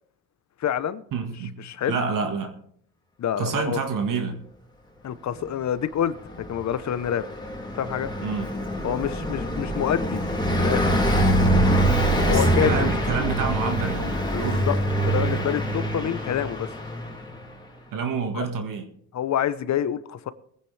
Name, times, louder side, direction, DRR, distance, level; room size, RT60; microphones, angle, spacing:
voice 1, 0.6-1.0 1.6-2.0 3.2-3.8 5.0-7.2 7.7-8.1 8.8-10.2 10.5-10.9 12.3-12.7 14.3-14.8 15.1-16.7 18.3-18.5 19.1-20.3, left 9 dB, 50° left, 0.9 m, -27 dB
voice 2, 1.1-1.6 1.9-2.5 3.4-4.4 8.2-8.5 12.3-14.7 17.9-18.9, right 5 dB, 65° right, 1.8 m, -28 dB
Car passing by, 6.3-17.4, right 1 dB, 10° left, 3.0 m, -24 dB
21.0 x 9.8 x 3.4 m
cardioid pair, 95°, 35 cm